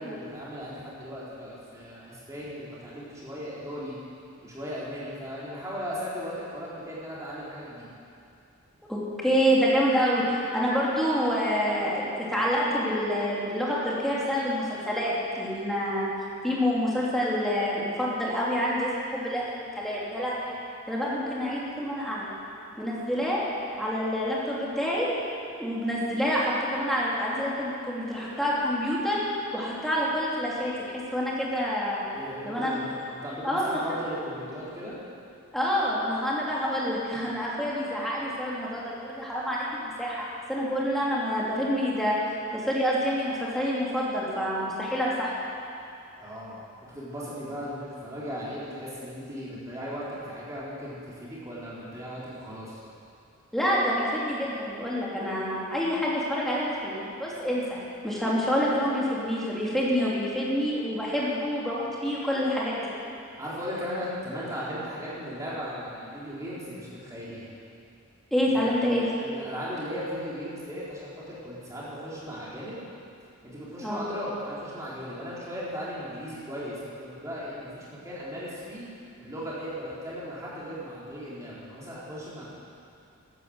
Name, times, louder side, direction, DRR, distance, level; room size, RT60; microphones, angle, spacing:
voice 1, 0.0-3.9 4.4-7.9 32.1-35.0 46.2-52.8 63.4-67.5 68.5-72.8 73.4-78.8 79.2-82.4, equal, 15° right, -8 dB, 3.8 m, -37 dB
voice 2, 8.9-16.1 16.4-20.5 20.9-22.3 22.8-23.4 23.8-25.1 25.6-32.0 32.4-32.8 33.4-33.6 35.5-42.2 42.5-45.3 53.5-62.9 68.3-69.1 73.8-74.1, equal, ahead, -7 dB, 2.8 m, -27 dB
13.5 x 10.5 x 7.9 m, 2.5 s
head